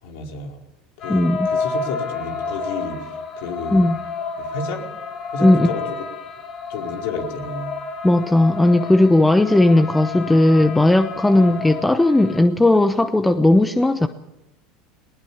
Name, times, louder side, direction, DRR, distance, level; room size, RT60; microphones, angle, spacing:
voice 1, 0.0-0.6 1.0-3.1 3.4-3.9 4.4-4.9 5.3-5.8 6.7-7.7 11.3-11.5, left 3 dB, 75° left, 2 dB, 4.7 m, -31 dB
sound 1, 1.0-12.4, left 4 dB, 45° left, 3.5 m, -30 dB
voice 2, 1.1-1.5 3.7-4.0 5.4-5.7 8.0-14.1, left 1 dB, 10° left, 9 dB, 1.0 m, -16 dB
20.0 x 19.5 x 7.3 m, 0.89 s
supercardioid pair, 105°, 0 cm